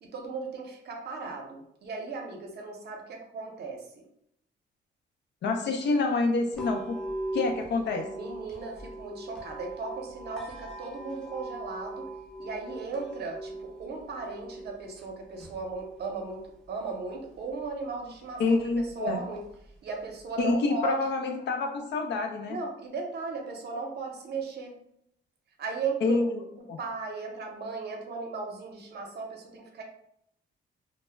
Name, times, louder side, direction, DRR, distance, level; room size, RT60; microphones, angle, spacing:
voice 1, 0.0-4.0 8.1-12.1 12.4-18.4 18.8-19.4 19.8-21.0 22.5-24.7 25.6-26.2 26.8-29.8, right 4 dB, 55° right, 1 dB, 0.7 m, -36 dB
voice 2, 5.4-7.0 7.3-8.1 18.4-19.2 20.4-22.6 26.0-26.8, left 3 dB, 60° left, 4 dB, 0.5 m, -27 dB
sound 1, 6.5-20.5, right 2 dB, 5° left, 0.6 m, -42 dB
2.1 x 2.0 x 3.3 m, 0.75 s
cardioid pair, 90°, 20 cm